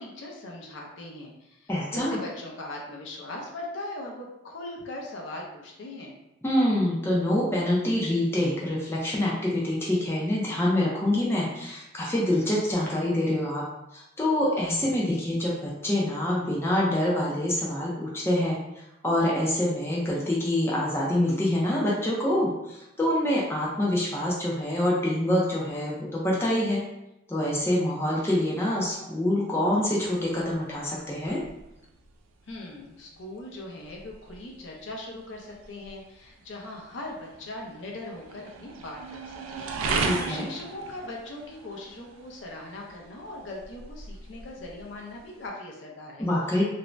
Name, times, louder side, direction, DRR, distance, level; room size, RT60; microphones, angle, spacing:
voice 1, 0.0-6.2 32.5-46.3, left 2 dB, 65° left, -1 dB, 0.5 m, -40 dB
voice 2, 1.7-2.2 6.4-13.6 13.9-26.8 27.3-31.4 40.0-40.5 46.2-46.6, left 1 dB, 10° left, -5 dB, 0.4 m, -26 dB
sound 1, 30.0-45.5, right 4 dB, 85° right, 0.3 m, -38 dB
2.5 x 2.0 x 3.1 m, 0.90 s
head